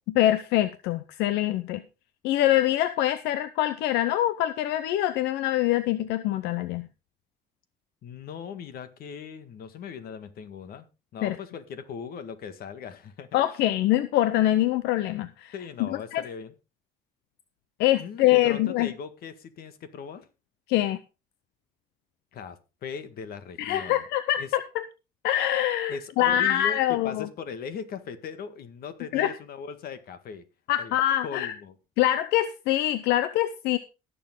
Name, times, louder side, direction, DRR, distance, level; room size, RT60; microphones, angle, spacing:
voice 1, 0.1-1.8 2.2-6.9 11.2-11.4 13.3-15.5 15.8-16.2 17.8-18.9 20.7-21.0 23.6-24.8 25.2-27.3 29.1-29.3 30.7-31.5 32.0-33.8, left 13 dB, 90° left, 13 dB, 0.7 m, -24 dB
voice 2, 8.0-10.9 11.1-13.6 15.5-16.5 18.0-20.3 22.3-24.0 24.4-24.5 25.9-30.4 30.8-31.0 31.2-31.8, left 6 dB, 65° left, 10 dB, 1.8 m, -39 dB
18.5 x 7.1 x 3.8 m, 0.30 s
cardioid pair, 110°, 17 cm